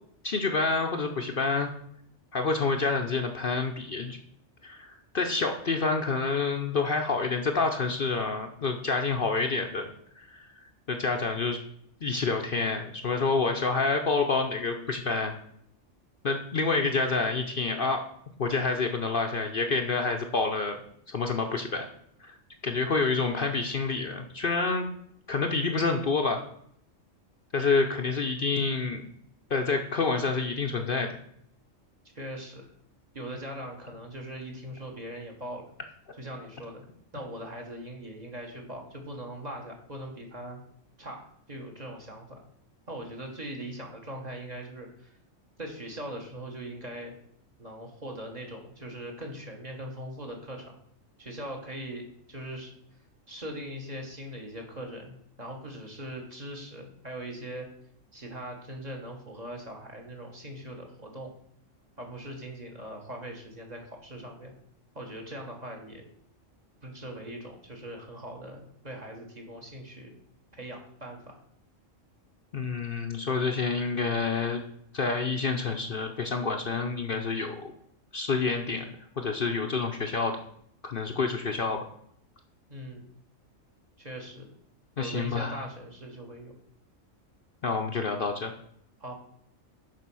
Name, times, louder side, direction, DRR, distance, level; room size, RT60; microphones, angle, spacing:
voice 1, 0.2-1.7 2.3-4.2 4.6-9.9 10.2-10.5 10.9-11.6 12.0-15.3 16.2-18.0 18.4-20.8 21.1-21.9 22.2-22.3 22.6-24.9 25.3-26.4 27.5-29.0 29.5-31.2 72.5-74.6 74.9-77.7 78.1-80.4 80.8-81.8 85.0-85.6 87.6-88.5, left 4 dB, 50° left, 4 dB, 0.8 m, -28 dB
voice 2, 32.1-32.7 33.1-35.7 36.2-36.8 37.1-40.6 41.0-42.4 42.9-45.1 45.6-47.1 47.6-50.8 51.2-52.0 52.3-52.7 53.3-57.7 58.1-61.3 62.0-64.5 64.9-66.0 66.8-70.1 70.6-71.4 82.7-83.1 84.0-84.5 85.0-86.5 89.0-89.1, right 1 dB, 35° right, 1 dB, 1.6 m, -40 dB
7.0 x 5.0 x 6.1 m, 0.68 s
omnidirectional pair, 1.3 m